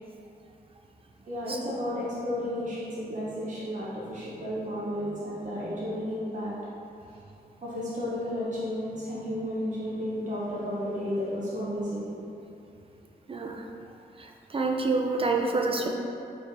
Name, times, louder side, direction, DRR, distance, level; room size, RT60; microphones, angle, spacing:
voice 1, 1.3-6.6 7.6-12.1 15.6-15.8, equal, 50° right, -8 dB, 0.7 m, -32 dB
voice 2, 13.3-13.6 14.2-15.9, right 3 dB, 35° right, 2 dB, 0.4 m, -27 dB
4.2 x 3.2 x 2.6 m, 2.7 s
cardioid pair, 75°, 16 cm